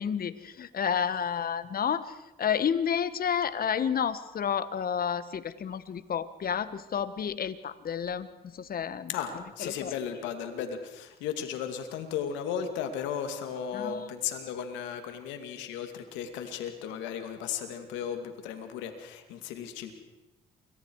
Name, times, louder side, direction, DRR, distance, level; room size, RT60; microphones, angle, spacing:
voice 1, 0.0-8.3 8.5-9.1 9.6-9.9 13.7-14.1, left 7 dB, 55° left, 14 dB, 1.5 m, -30 dB
voice 2, 9.1-20.0, left 8 dB, 85° left, 7 dB, 2.5 m, -35 dB
28.5 x 23.5 x 4.8 m, 1.0 s
supercardioid pair, 60°, 19 cm